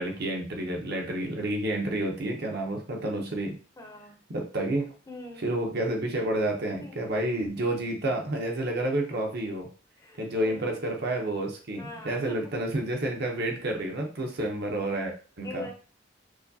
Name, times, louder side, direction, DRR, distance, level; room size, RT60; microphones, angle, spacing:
voice 1, 0.0-3.6 4.3-4.9 5.4-9.7 10.2-15.7, right 1 dB, 55° right, 1 dB, 0.8 m, -30 dB
voice 2, 3.8-4.2 5.1-5.5 6.8-7.1 10.0-10.7 11.8-12.6 15.4-15.7, left 2 dB, 20° left, 2 dB, 0.7 m, -43 dB
4.8 x 2.3 x 2.7 m, 0.39 s
head